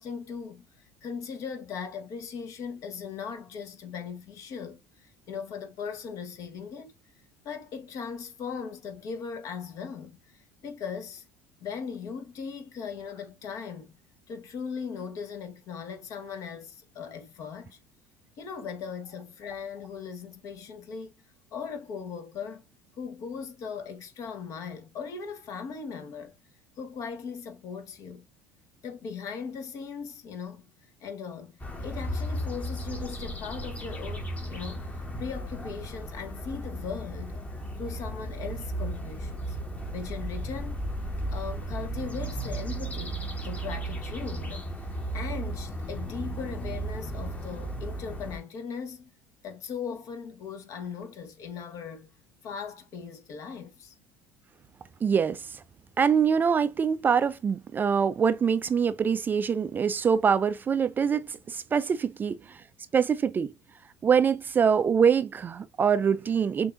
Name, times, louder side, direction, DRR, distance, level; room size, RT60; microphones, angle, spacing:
voice 1, 0.0-6.9 7.4-11.2 11.6-14.0 14.3-17.8 18.4-21.1 21.5-22.6 23.0-26.4 26.8-28.3 28.8-30.7 31.0-31.5 31.8-34.9 35.2-37.4 37.8-39.6 39.9-40.8 41.3-44.7 45.1-49.1 49.4-52.1 52.4-53.9, left 6 dB, 50° left, 1.0 m, -38 dB
sound 1, 31.6-48.4, right 1 dB, 20° left, 1.2 m, -35 dB
voice 2, 55.0-55.6 56.0-62.6 62.9-63.5 64.0-66.7, right 6 dB, 25° right, 0.3 m, -24 dB
6.5 x 2.6 x 2.5 m
figure-of-eight pair, 65°, 7 cm